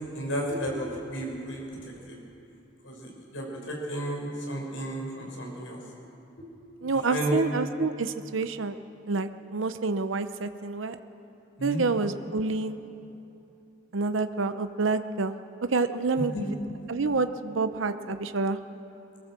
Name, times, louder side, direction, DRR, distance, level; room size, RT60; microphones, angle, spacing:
voice 1, 0.1-1.8 2.1-2.2 2.8-5.8 7.1-7.4 11.6-11.8 16.2-16.4, equal, 80° left, -1 dB, 5.6 m, -32 dB
voice 2, 6.8-8.8 9.1-11.0 11.6-12.8 13.9-15.4 15.7-16.3 16.9-18.6, right 3 dB, 80° right, 9 dB, 0.7 m, -28 dB
23.0 x 18.0 x 7.5 m, 2.8 s
head